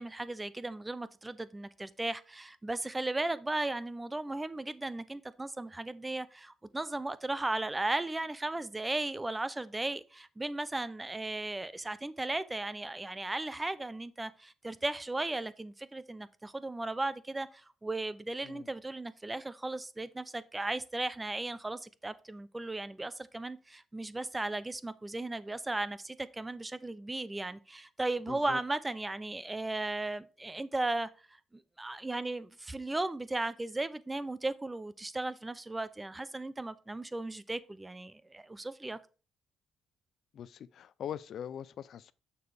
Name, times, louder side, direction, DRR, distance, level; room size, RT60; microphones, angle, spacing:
voice 1, 0.0-31.1 31.5-39.0, right 2 dB, 15° right, 0.5 m, -36 dB
voice 2, 28.3-28.6 40.3-42.1, left 9 dB, 65° left, 0.4 m, -42 dB
6.9 x 6.4 x 3.4 m
cardioid pair, 90°, 0 cm